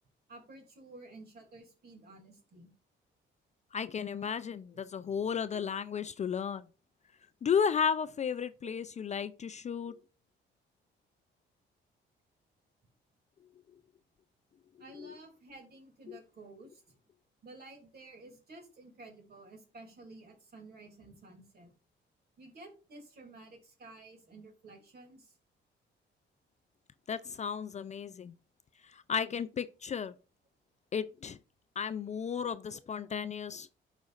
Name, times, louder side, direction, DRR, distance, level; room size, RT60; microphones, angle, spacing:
voice 1, 0.3-2.7 8.6-8.7 14.8-17.0 17.4-21.7 22.4-25.3, right 2 dB, 55° right, 2.6 m, -52 dB
voice 2, 3.7-6.6 7.4-9.9 15.0-15.1 16.1-16.2 27.1-28.3 28.9-30.1 30.9-31.4 31.8-33.7, left 7 dB, 35° left, 0.4 m, -34 dB
11.5 x 4.1 x 2.4 m
cardioid pair, 90°, 20 cm